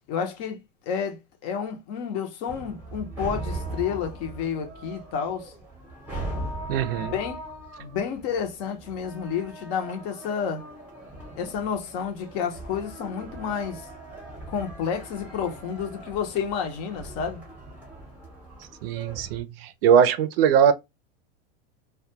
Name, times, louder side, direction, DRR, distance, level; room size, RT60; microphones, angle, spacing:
voice 1, 0.1-0.6 0.9-5.5 7.0-7.4 7.8-10.6 11.4-13.9 14.5-17.4, left 7 dB, 40° left, 0.7 m, -30 dB
sound 1, 2.5-19.4, right 2 dB, 5° right, 0.8 m, -39 dB
voice 2, 6.7-7.1 18.8-20.7, right 8 dB, 70° right, 0.5 m, -21 dB
2.3 x 2.2 x 2.7 m
supercardioid pair, 165°, 30 cm